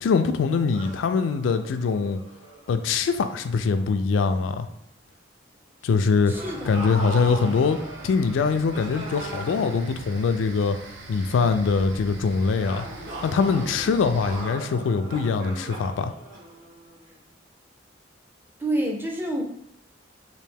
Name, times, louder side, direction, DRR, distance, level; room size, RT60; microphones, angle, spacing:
voice 1, 0.0-2.2 2.7-4.7 5.8-6.3 6.6-10.8 11.1-12.8 13.2-16.1, left 5 dB, 80° left, 9 dB, 0.3 m, -23 dB
sound 1, 0.7-3.8 4.2-4.5 6.3-10.9 12.6-17.2, right 1 dB, 50° right, 1.3 m, -40 dB
voice 2, 6.3-6.7 18.6-19.4, right 1 dB, 10° right, 1 dB, 0.5 m, -27 dB
sound 2, 6.3-14.4, right 2 dB, 80° right, 0.6 m, -44 dB
3.2 x 2.6 x 3.3 m, 0.76 s
head